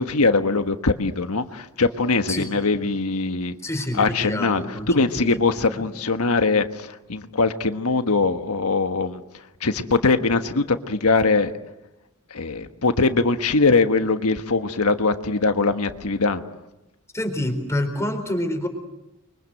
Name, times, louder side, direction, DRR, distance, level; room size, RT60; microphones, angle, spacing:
voice 1, 0.0-3.5 3.9-9.2 9.6-11.5 12.3-16.4, left 3 dB, 80° left, 8 dB, 1.4 m, -21 dB
voice 2, 3.6-5.3 5.7-5.9 17.1-18.7, left 1 dB, 15° left, 5 dB, 4.3 m, -27 dB
29.5 x 24.0 x 7.9 m, 0.96 s
head